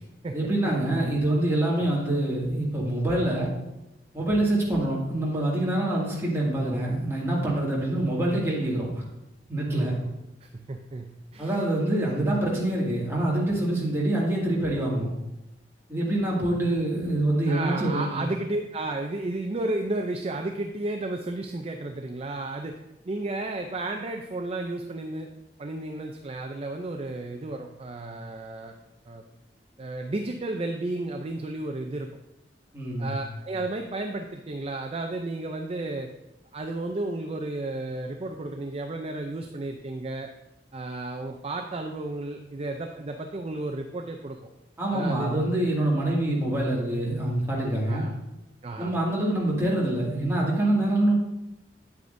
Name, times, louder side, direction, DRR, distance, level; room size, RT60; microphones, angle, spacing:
voice 1, 0.3-3.5 4.1-9.0 9.5-10.0 11.4-15.1 15.9-18.2 32.7-33.2 44.8-48.0 48.8-51.1, right 1 dB, 15° right, -5 dB, 2.2 m, -25 dB
voice 2, 9.7-10.1 10.4-11.6 17.5-22.8 23.1-25.3 25.6-28.7 29.1-29.2 29.8-32.1 33.0-36.1 36.5-40.3 40.7-44.4 44.9-45.3 47.9-48.1 48.6-48.9, right 2 dB, 35° right, 4 dB, 0.5 m, -33 dB
9.3 x 8.3 x 2.6 m, 0.93 s
head